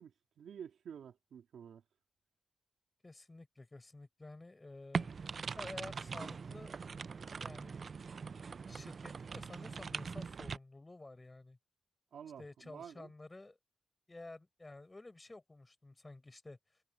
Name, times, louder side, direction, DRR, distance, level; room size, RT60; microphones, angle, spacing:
voice 1, 0.0-1.8 12.1-13.1, right 8 dB, 75° right, 3.0 m, -50 dB
voice 2, 3.0-5.1 5.6-6.8 7.4-7.8 8.7-11.6 12.4-13.6 14.1-16.6, left 2 dB, 20° left, 7.1 m, -51 dB
sound 1, 4.9-10.6, right 5 dB, 45° right, 0.3 m, -42 dB
cardioid pair, 110°, 0 cm